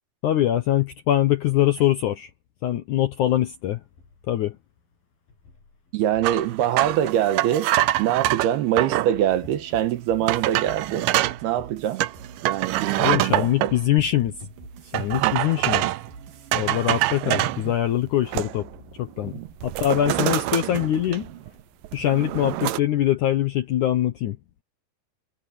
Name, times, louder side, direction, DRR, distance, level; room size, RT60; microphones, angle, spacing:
voice 1, 0.2-2.3 2.6-3.8 4.3-4.6 13.0-14.3 14.8-15.9 16.5-18.7 19.0-19.3 19.6-21.3 21.9-24.4, left 12 dB, 70° left, 1.9 m, -23 dB
sound 1, 3.4-23.1, left 4 dB, 55° left, 9.2 m, -51 dB
voice 2, 5.9-7.7 8.0-11.1 11.4-12.0 12.4-13.7 15.2-15.4 17.2-17.7 19.2-19.5, right 11 dB, 75° right, 3.1 m, -24 dB
sound 2, 6.2-9.1 9.7-9.8 10.3-11.4 12.0-13.7 14.9-16.1 16.5-17.6 18.1-18.8 19.1-19.3 19.6-21.5 21.8-22.8, right 16 dB, 90° right, 1.9 m, -25 dB
sound 3, 9.3-16.5, right 6 dB, 60° right, 3.6 m, -45 dB
omnidirectional pair, 4.9 m